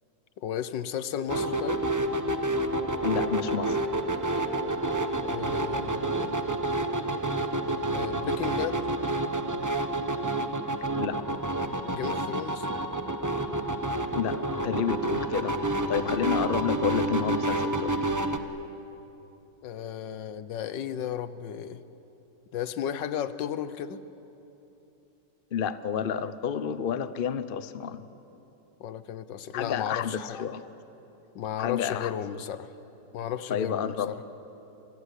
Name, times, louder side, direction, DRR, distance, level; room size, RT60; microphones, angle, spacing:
voice 1, 0.4-1.8 5.3-6.3 7.9-8.9 11.9-12.7 19.6-21.8 22.5-24.0 28.8-30.4 31.3-32.7 33.1-34.2, left 9 dB, 75° left, 14 dB, 1.6 m, -34 dB
sound 1, 1.3-18.4, right 1 dB, 15° right, 0.7 m, -29 dB
voice 2, 3.0-3.8 10.9-11.2 14.1-15.6 15.9-17.9 25.5-28.0 29.5-30.7 31.6-32.1 33.5-34.1, left 8 dB, 45° left, 13 dB, 0.7 m, -30 dB
26.5 x 21.0 x 10.0 m, 3.0 s
omnidirectional pair, 2.0 m